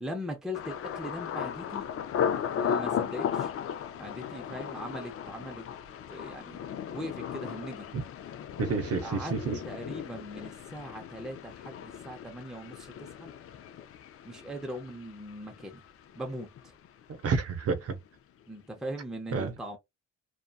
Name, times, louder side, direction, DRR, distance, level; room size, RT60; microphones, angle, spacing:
voice 1, 0.0-1.9 2.5-3.5 3.9-5.7 6.1-6.6 6.9-7.9 9.0-13.3 14.2-15.8 16.1-16.7 18.5-19.8, equal, ahead, 0.6 m, -40 dB
Thunder, 0.5-16.3 16.6-17.2 17.6-17.9, left 8 dB, 50° left, 0.4 m, -36 dB
voice 2, 8.6-9.6 17.1-18.0 19.3-19.5, right 4 dB, 50° right, 0.8 m, -29 dB
2.6 x 2.3 x 2.3 m
cardioid pair, 90°, 30 cm